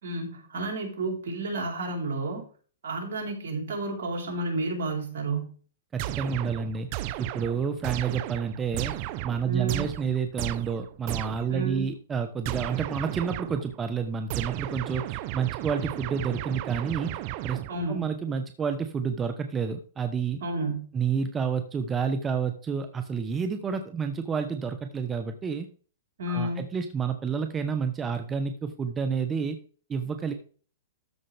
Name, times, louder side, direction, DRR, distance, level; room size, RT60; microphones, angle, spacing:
voice 1, 0.0-2.4 2.8-5.5 9.4-9.9 11.5-11.9 17.7-18.0 20.4-20.9 26.2-26.6, right 2 dB, 70° right, 1 dB, 4.1 m, -31 dB
voice 2, 5.9-6.9 7.2-9.0 9.2-17.1 17.4-17.6 17.9-20.4 20.9-25.7 26.3-29.6 29.9-30.3, right 6 dB, 20° right, 7 dB, 1.0 m, -29 dB
sound 1, 6.0-11.6 12.4-13.7 14.3-18.0, right 15 dB, 45° right, 0.6 m, -34 dB
13.5 x 5.4 x 3.4 m, 0.39 s
hypercardioid pair, 125°, 0 cm